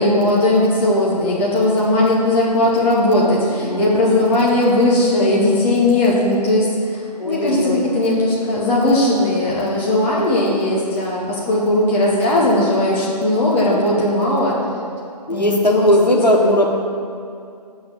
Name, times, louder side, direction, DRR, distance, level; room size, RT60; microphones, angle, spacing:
voice 1, 0.0-14.6 15.3-15.9 16.3-16.6, left 1 dB, 10° left, -5 dB, 1.1 m, -18 dB
voice 2, 3.7-4.4 7.2-7.8 15.3-16.7, left 1 dB, 85° left, 0 dB, 1.5 m, -18 dB
7.7 x 6.0 x 7.3 m, 2.4 s
figure-of-eight pair, 140°, 21 cm